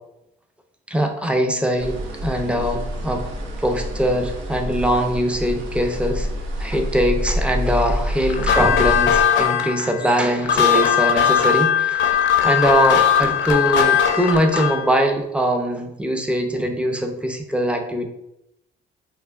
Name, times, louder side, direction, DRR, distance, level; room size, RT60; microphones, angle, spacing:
voice 1, 0.9-3.3 3.6-6.3 6.6-18.1, equal, 5° right, 4 dB, 0.4 m, -22 dB
sound 1, 1.8-9.2, equal, 85° right, 0.6 m, -27 dB
sound 2, 8.3-14.9, left 8 dB, 70° left, 0.5 m, -19 dB
3.3 x 2.4 x 2.3 m, 0.84 s
cardioid pair, 90°, 20 cm